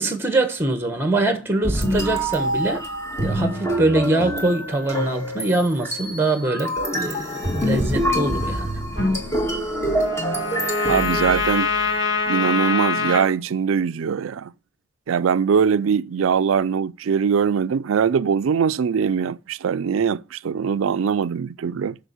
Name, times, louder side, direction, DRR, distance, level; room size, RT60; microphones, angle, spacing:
voice 1, 0.0-2.9 3.2-8.7, right 2 dB, 10° right, 1.4 m, -23 dB
sound 1, 1.6-11.9, equal, 15° left, 2.0 m, -25 dB
Trumpet, 8.9-13.3, left 4 dB, 55° left, 4.1 m, -25 dB
voice 2, 10.8-11.7 12.3-14.5 15.1-22.0, right 6 dB, 90° right, 0.4 m, -21 dB
7.2 x 6.8 x 7.0 m
head